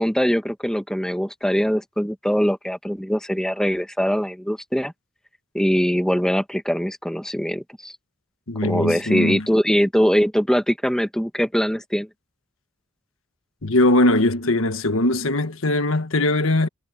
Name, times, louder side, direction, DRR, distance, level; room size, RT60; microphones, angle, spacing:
voice 1, 0.0-4.9 5.5-7.9 8.6-12.1, equal, 5° left, 1.4 m, -22 dB
voice 2, 8.5-9.5 13.6-16.7, left 1 dB, 80° left, 1.5 m, -20 dB
head